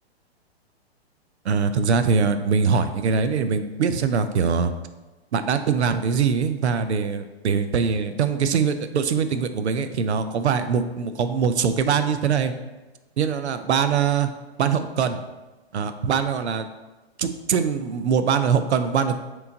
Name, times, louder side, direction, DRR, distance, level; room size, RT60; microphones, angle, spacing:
voice 1, 1.5-4.7 5.3-12.5 13.2-14.3 14.6-15.2 15.7-16.7 17.2-19.2, right 6 dB, 85° right, 9 dB, 0.5 m, -22 dB
3.3 x 3.0 x 3.8 m, 1.1 s
hypercardioid pair, 125°, 33 cm